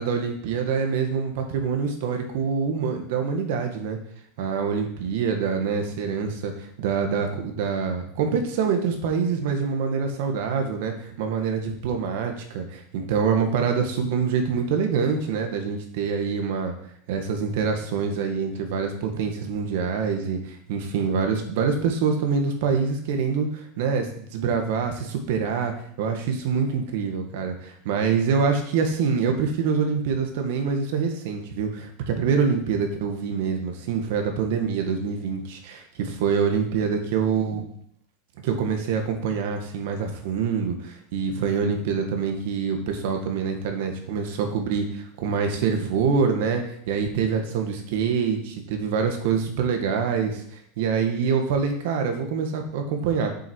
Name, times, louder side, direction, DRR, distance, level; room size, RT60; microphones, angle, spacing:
voice 1, 0.0-4.0 4.4-16.7 17.1-37.6 38.4-50.3 50.8-53.3, right 6 dB, 65° right, 4 dB, 1.8 m, -25 dB
8.2 x 7.6 x 4.8 m, 0.65 s
supercardioid pair, 155°, 0 cm